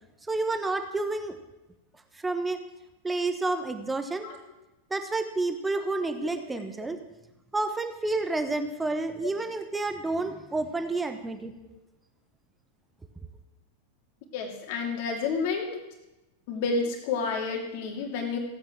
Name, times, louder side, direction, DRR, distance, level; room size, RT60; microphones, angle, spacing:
voice 1, 0.3-1.4 2.2-2.6 3.0-4.3 4.9-7.0 7.5-11.5, right 2 dB, 10° right, 8 dB, 1.3 m, -29 dB
voice 2, 14.3-15.8 16.5-18.4, left 4 dB, 50° left, 2 dB, 2.8 m, -30 dB
15.5 x 8.8 x 6.2 m, 0.98 s
figure-of-eight pair, 90°, 0 cm